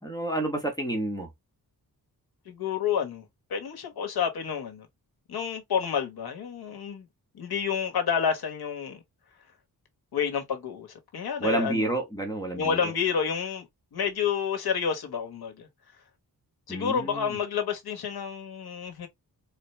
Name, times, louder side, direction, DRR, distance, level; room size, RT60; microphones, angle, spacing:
voice 1, 0.0-1.3 11.4-12.9 16.7-17.4, right 1 dB, 10° left, 1.0 m, -30 dB
voice 2, 2.5-3.2 3.5-4.9 5.3-7.1 7.3-9.0 10.1-11.9 12.6-15.7 16.7-19.1, left 7 dB, 75° left, 1.3 m, -29 dB
4.4 x 2.3 x 3.2 m
wide cardioid pair, 135°, 38 cm